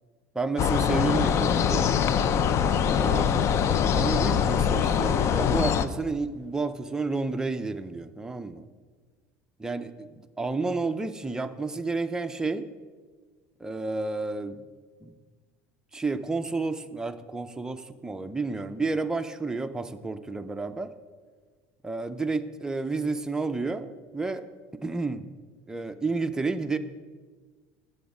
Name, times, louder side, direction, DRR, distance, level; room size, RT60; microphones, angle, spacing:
voice 1, 0.3-2.0 3.0-8.7 9.6-12.7 13.6-14.6 15.0-15.1 15.9-20.9 21.8-24.4 24.8-25.3 25.7-26.8, right 3 dB, 10° right, 7 dB, 0.5 m, -31 dB
sound 1, 0.6-5.9, left 8 dB, 40° left, 0.5 m, -23 dB
9.2 x 7.3 x 5.0 m, 1.5 s
supercardioid pair, 115°, 7 cm